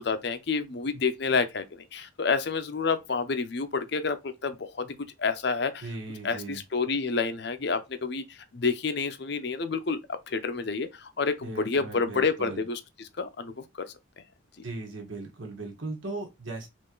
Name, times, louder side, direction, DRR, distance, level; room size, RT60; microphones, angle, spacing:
voice 1, 0.0-5.9 6.2-10.0 10.3-13.7, left 4 dB, 55° left, 0.6 m, -29 dB
voice 2, 5.8-6.6 11.4-12.6 14.6-16.7, right 2 dB, 75° right, 1.4 m, -38 dB
3.8 x 3.2 x 3.8 m
head